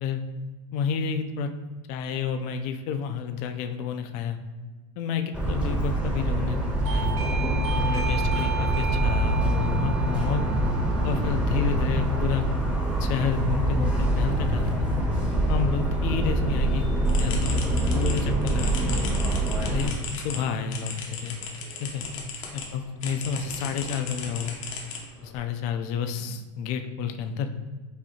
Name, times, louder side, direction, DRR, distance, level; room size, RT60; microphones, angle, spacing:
voice 1, 0.7-1.5 1.9-4.4 5.0-6.6 6.9-7.1 7.7-10.5 11.0-12.4 13.0-14.7 15.5-16.8 17.2-17.6 17.9-19.1 19.7-20.0 20.2-21.4 21.8-22.0 22.5-24.6 25.2-27.5, left 6 dB, 45° left, 7 dB, 0.4 m, -30 dB
Motor vehicle (road) / Siren, 5.3-19.9, right 1 dB, 5° right, 0.8 m, -25 dB
Doorbell, 6.8-13.3, right 6 dB, 75° right, 0.9 m, -35 dB
sound 1, 17.0-22.7 23.0-25.4, left 5 dB, 85° left, 0.9 m, -37 dB
4.9 x 2.7 x 2.8 m, 1.3 s
supercardioid pair, 145°, 16 cm